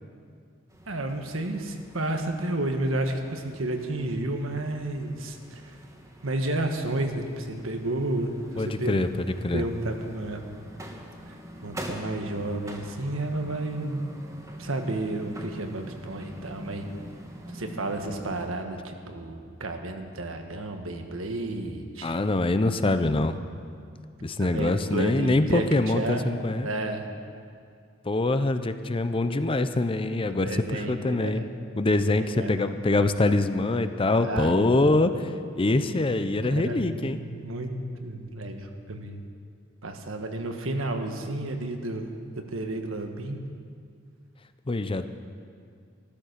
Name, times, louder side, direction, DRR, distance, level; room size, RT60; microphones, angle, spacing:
sound 1, 0.7-18.5, equal, 15° right, 1.5 m, -44 dB
voice 1, 0.9-5.8 6.2-9.1 9.5-10.4 11.3-11.4 11.6-14.0 14.6-16.9 17.5-22.1 24.4-26.3 26.6-27.1 30.3-31.6 32.1-32.5 34.2-34.7 36.4-37.7 38.0-39.2 39.8-43.4, right 2 dB, 90° right, 5 dB, 1.4 m, -31 dB
voice 2, 8.6-9.7 22.0-23.4 24.2-26.7 28.1-31.4 31.8-37.2 44.7-45.1, left 2 dB, 25° left, 10 dB, 0.6 m, -24 dB
13.5 x 13.0 x 6.6 m, 2.3 s
head